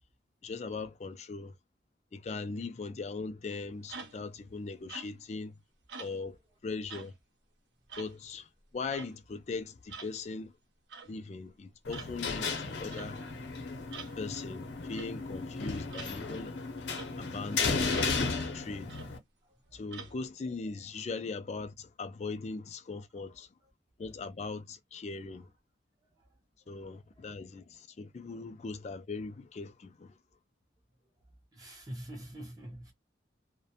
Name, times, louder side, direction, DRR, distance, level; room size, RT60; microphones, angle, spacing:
voice 1, 0.4-1.5 2.1-5.5 6.0-6.4 6.6-7.1 8.0-10.5 11.0-13.2 14.2-16.6 17.2-19.0 19.7-23.5 24.0-25.5 26.7-30.2, left 4 dB, 35° left, 0.3 m, -40 dB
sound 1, 3.9-4.3 4.9-5.3 5.9-6.2 6.9-7.1 7.9-8.2 8.9-9.1 9.9-10.1 10.9-11.1 11.9-12.1 12.9-13.1 13.9-14.1 14.9-15.1 15.9-16.1 16.9-17.1 17.9-18.1 18.9-19.2 19.9-20.1, right 5 dB, 70° right, 0.7 m, -46 dB
sound 2, 11.8-19.2, left 4 dB, 65° left, 0.7 m, -34 dB
voice 2, 31.5-32.9, right 1 dB, 20° right, 0.5 m, -44 dB
2.5 x 2.1 x 2.7 m
head